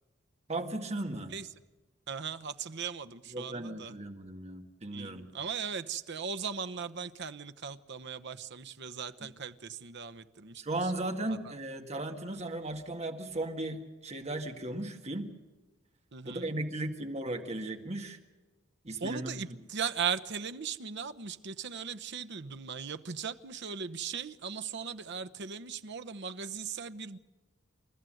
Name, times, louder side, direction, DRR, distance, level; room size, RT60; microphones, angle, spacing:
voice 1, 0.5-1.3 3.3-5.3 10.6-15.3 16.2-18.2 18.8-19.4, right 2 dB, 30° right, 1.9 m, -36 dB
voice 2, 2.1-3.9 4.9-10.9 11.3-11.5 16.1-16.5 19.0-27.2, right 6 dB, 60° right, 0.9 m, -38 dB
29.0 x 14.0 x 7.9 m
head